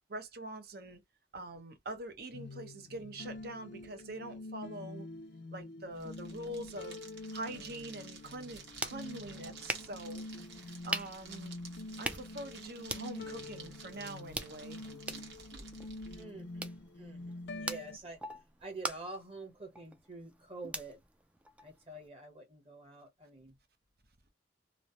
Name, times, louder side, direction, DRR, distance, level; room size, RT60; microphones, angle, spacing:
voice 1, 0.1-1.0 1.3-5.1 5.5-7.0 7.3-10.3 10.7-11.5 12.0-15.7, right 1 dB, 60° right, 0.7 m, -44 dB
sound 1, 2.3-18.0, left 2 dB, 65° left, 0.5 m, -46 dB
sound 2, 5.9-16.2, right 5 dB, 80° right, 1.1 m, -53 dB
sound 3, 8.4-22.1, right 2 dB, 5° right, 0.4 m, -44 dB
voice 2, 16.1-18.2 18.6-21.0 21.6-23.5, right 2 dB, 35° right, 1.1 m, -47 dB
3.1 x 2.0 x 2.6 m
head